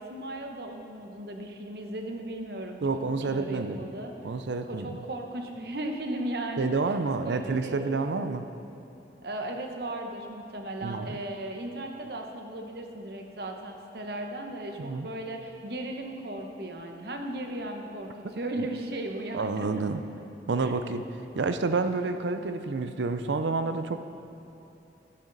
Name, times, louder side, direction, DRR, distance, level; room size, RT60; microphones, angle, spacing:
voice 1, 0.0-3.0 3.3-4.1 4.6-6.9 7.2-8.0 9.2-19.8 20.6-20.7, right 1 dB, 60° right, 3 dB, 1.1 m, -36 dB
voice 2, 2.8-3.8 4.2-5.0 6.6-8.5 10.8-11.2 14.8-15.1 18.2-18.3 19.3-20.0 20.5-21.0 21.3-24.0, right 3 dB, 85° right, 9 dB, 0.5 m, -29 dB
13.0 x 11.0 x 4.0 m, 3.0 s
head